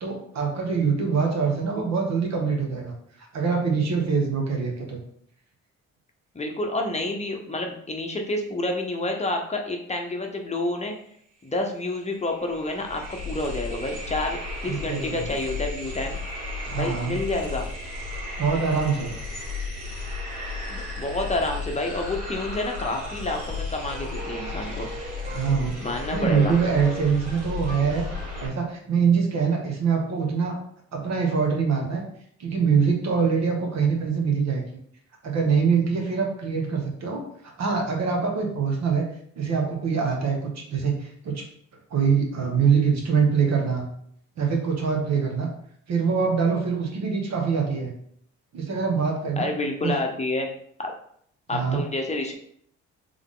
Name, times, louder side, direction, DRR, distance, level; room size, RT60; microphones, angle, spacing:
voice 1, 0.0-5.0 14.7-15.2 16.6-17.1 18.4-19.1 25.3-28.0 28.4-30.5 30.9-32.0 32.4-34.6 35.2-39.0 39.4-41.4 41.9-43.9 44.4-45.5 45.9-47.9 48.5-49.5 49.8-49.9 51.5-51.8, right 5 dB, 60° right, 1 dB, 1.3 m, -24 dB
voice 2, 6.3-10.9 11.4-16.2 16.8-17.7 20.7-24.9 25.8-26.5 49.4-50.5 50.8-50.9 51.5-52.3, left 2 dB, 20° left, 2 dB, 0.8 m, -29 dB
sound 1, 11.5-11.6 11.8-28.5, left 3 dB, 90° right, 1.6 m, -34 dB
sound 2, 22.7-28.4, right 1 dB, 30° right, 0.8 m, -42 dB
3.6 x 3.4 x 3.7 m, 0.65 s
cardioid pair, 90°, 30 cm